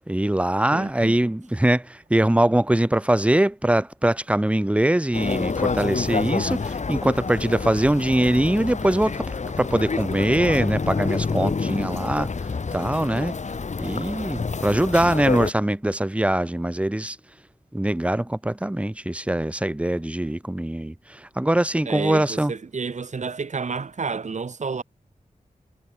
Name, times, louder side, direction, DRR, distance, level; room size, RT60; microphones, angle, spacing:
voice 1, 0.1-13.3 13.8-17.2 17.7-22.5, right 1 dB, 10° right, 1.0 m, -22 dB
voice 2, 0.7-1.3 21.9-24.8, right 5 dB, 55° right, 1.9 m, -30 dB
sound 1, 5.1-15.5, left 4 dB, 55° left, 2.7 m, -28 dB
wide cardioid pair, 105°, 14 cm